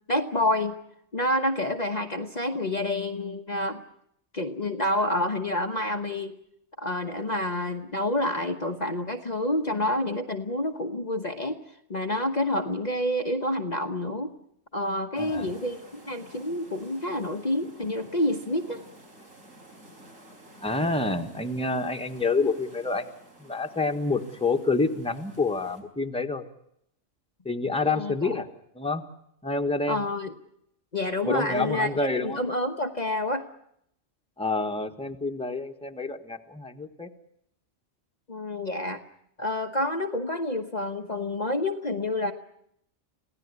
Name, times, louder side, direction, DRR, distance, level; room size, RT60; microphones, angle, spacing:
voice 1, 0.1-0.8 1.1-3.8 4.3-6.4 6.8-11.6 11.9-14.3 14.7-18.8 27.8-28.1 29.9-30.3 30.9-33.4 38.3-39.0 39.4-42.3, left 1 dB, 35° left, 4 dB, 1.2 m, -28 dB
sound 1, 15.1-25.8, right 1 dB, 85° right, 4.9 m, -51 dB
voice 2, 15.2-15.5 20.6-23.1 23.4-26.5 27.4-28.5 28.7-29.0 29.4-30.1 31.2-32.4 34.4-37.1, left 3 dB, 5° left, 5 dB, 1.4 m, -28 dB
27.0 x 16.5 x 9.8 m, 0.75 s
omnidirectional pair, 1.3 m